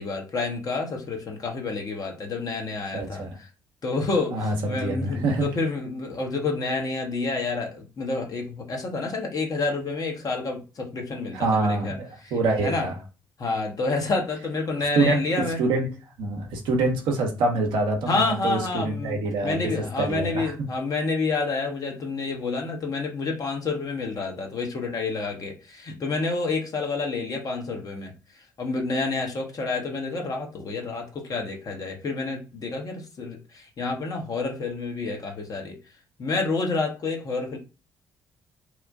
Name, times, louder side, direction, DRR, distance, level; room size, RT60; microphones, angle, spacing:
voice 1, 0.0-3.2 3.8-12.0 12.2-12.9 13.4-15.6 18.1-28.1 28.6-35.8 36.2-37.6, left 3 dB, 40° left, 2 dB, 0.9 m, -29 dB
voice 2, 2.9-3.4 4.3-5.5 11.3-12.9 14.9-15.9 16.2-20.5, right 3 dB, 55° right, 2 dB, 0.8 m, -25 dB
3.0 x 2.1 x 2.5 m, 0.32 s
figure-of-eight pair, 45°, 10 cm